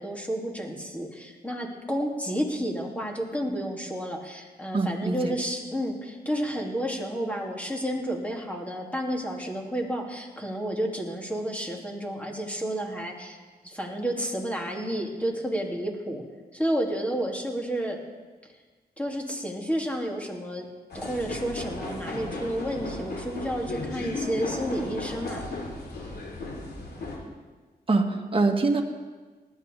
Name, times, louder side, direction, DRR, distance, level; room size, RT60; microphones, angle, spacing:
voice 1, 0.0-13.4 13.6-16.2 16.5-18.0 19.0-20.7 20.9-25.4, equal, 10° left, 0 dB, 2.9 m, -31 dB
voice 2, 4.7-5.3 27.9-28.8, right 3 dB, 35° right, 2 dB, 1.7 m, -24 dB
sound 1, 20.9-27.2, left 2 dB, 90° left, 2.7 m, -35 dB
19.5 x 13.0 x 3.6 m, 1.3 s
cardioid pair, 60°, 16 cm